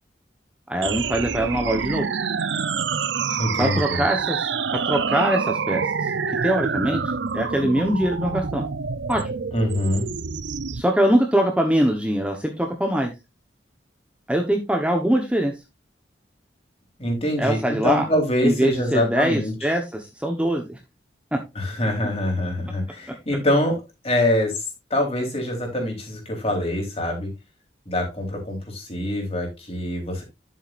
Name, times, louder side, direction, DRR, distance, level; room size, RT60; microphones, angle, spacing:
voice 1, 0.7-2.1 3.3-5.8 6.4-7.0 7.3-8.7 9.1-9.2 10.7-13.1 14.3-15.5 17.4-18.1 18.4-20.8 21.3-21.4, right 1 dB, 5° right, 2 dB, 1.1 m, -22 dB
sound 1, 0.8-10.8, right 5 dB, 80° right, 0.7 m, -27 dB
voice 2, 3.4-4.0 9.5-10.1 17.0-19.5 21.6-27.3 27.9-30.2, left 1 dB, 35° left, 1 dB, 3.8 m, -24 dB
10.5 x 7.7 x 2.6 m, 0.24 s
head